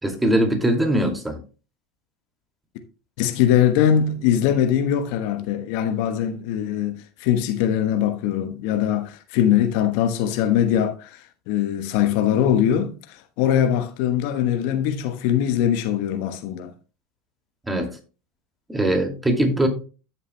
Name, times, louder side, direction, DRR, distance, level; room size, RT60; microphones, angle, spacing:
voice 1, 0.0-1.4 17.7-17.9 18.7-19.7, right 1 dB, 10° right, 2.4 m, -21 dB
voice 2, 3.2-16.7, left 10 dB, 60° left, 1.1 m, -22 dB
13.0 x 7.3 x 2.2 m
hypercardioid pair, 80°, 0 cm